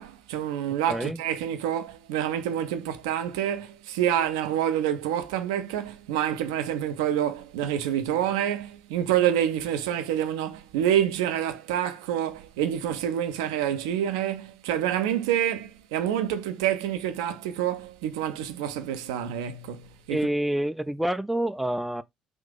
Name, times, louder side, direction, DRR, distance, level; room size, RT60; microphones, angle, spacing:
voice 1, 0.0-20.2, right 10 dB, 65° right, 0.5 m, -27 dB
voice 2, 0.9-1.2 20.1-22.0, right 1 dB, 5° right, 0.3 m, -27 dB
3.6 x 2.6 x 3.6 m
figure-of-eight pair, 50°, 3 cm